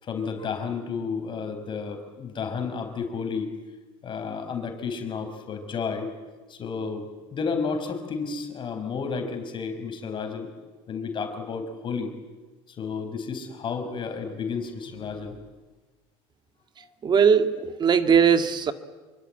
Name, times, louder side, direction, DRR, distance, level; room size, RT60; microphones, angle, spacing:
voice 1, 0.0-3.5 4.0-6.1 6.5-10.5 10.9-12.1 12.7-15.4, left 5 dB, 35° left, 6 dB, 5.5 m, -32 dB
voice 2, 17.0-18.7, right 7 dB, 30° right, 9 dB, 2.0 m, -19 dB
26.0 x 23.5 x 9.2 m, 1.3 s
supercardioid pair, 110°, 14 cm